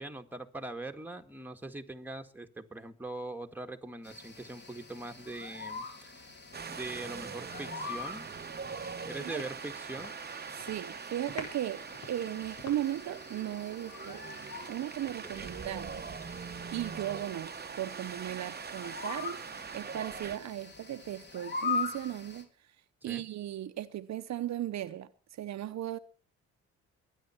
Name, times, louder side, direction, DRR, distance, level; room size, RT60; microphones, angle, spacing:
voice 1, 0.0-6.4 6.7-8.3 9.0-10.1 15.2-15.6 23.0-23.2, right 2 dB, 5° right, 1.9 m, -42 dB
sound 1, 4.0-22.4, left 5 dB, 35° left, 3.6 m, -43 dB
Wind, 6.5-20.4, right 6 dB, 30° right, 1.0 m, -43 dB
sound 2, 8.6-10.3 10.6-10.9 11.3-13.1, left 4 dB, 70° left, 4.5 m, -47 dB
voice 2, 10.5-14.2 14.7-16.0 16.7-19.4 19.7-22.5 23.0-26.0, right 12 dB, 65° right, 0.9 m, -36 dB
22.5 x 10.0 x 4.5 m
cardioid pair, 90°, 30 cm